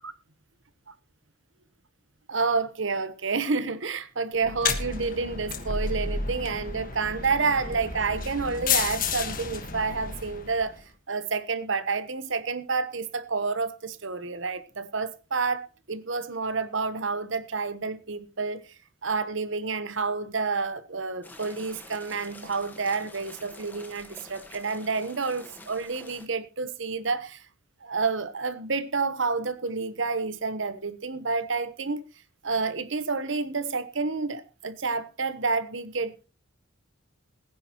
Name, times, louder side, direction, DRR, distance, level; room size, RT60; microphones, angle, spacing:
voice 1, 2.3-10.8 11.1-18.6 19.0-27.4 27.8-32.0 32.4-36.2, right 4 dB, 65° right, 1.1 m, -29 dB
sound 1, 4.4-10.8, left 5 dB, 40° left, 1.6 m, -31 dB
sound 2, 21.2-26.3, left 1 dB, 10° left, 1.4 m, -48 dB
21.0 x 10.0 x 3.0 m
head